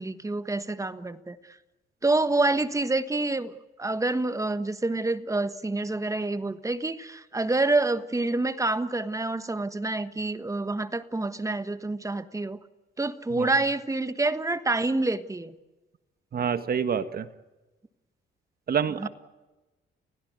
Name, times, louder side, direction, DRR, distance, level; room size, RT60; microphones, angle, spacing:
voice 1, 0.0-1.4 2.0-3.5 3.8-12.6 13.0-15.5 19.0-19.1, right 2 dB, 15° right, 12 dB, 1.4 m, -27 dB
voice 2, 16.3-17.3 18.7-19.1, right 7 dB, 50° right, 10 dB, 1.7 m, -27 dB
30.0 x 16.5 x 9.5 m, 1.1 s
cardioid pair, 90°, 20 cm